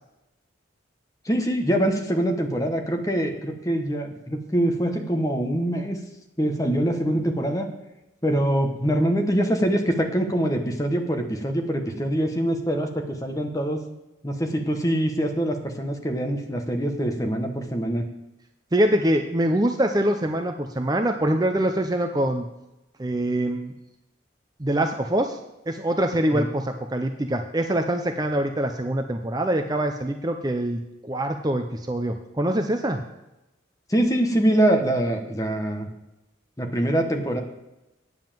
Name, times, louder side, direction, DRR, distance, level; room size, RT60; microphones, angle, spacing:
voice 1, 1.2-6.0 6.4-7.7 8.2-13.8 14.2-18.1 26.3-26.5 33.9-35.9 36.6-37.4, right 1 dB, 15° left, 4 dB, 1.2 m, -24 dB
voice 2, 18.7-22.4 23.0-23.7 24.6-25.4 25.7-33.0, right 1 dB, 20° right, 5 dB, 0.6 m, -24 dB
9.5 x 7.3 x 7.5 m, 0.96 s
head